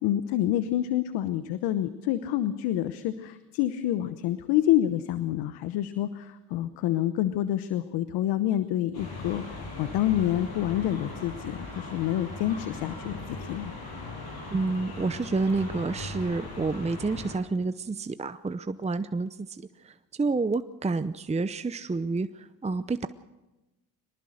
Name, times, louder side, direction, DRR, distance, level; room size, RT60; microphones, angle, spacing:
voice 1, 0.0-13.7, left 12 dB, 85° left, 12 dB, 1.0 m, -28 dB
sound 1, 8.9-17.4, left 2 dB, 70° left, 7.6 m, -39 dB
voice 2, 14.5-19.9 20.2-23.1, right 3 dB, 15° right, 11 dB, 0.8 m, -29 dB
23.0 x 19.5 x 6.5 m, 1.1 s
supercardioid pair, 65°, 39 cm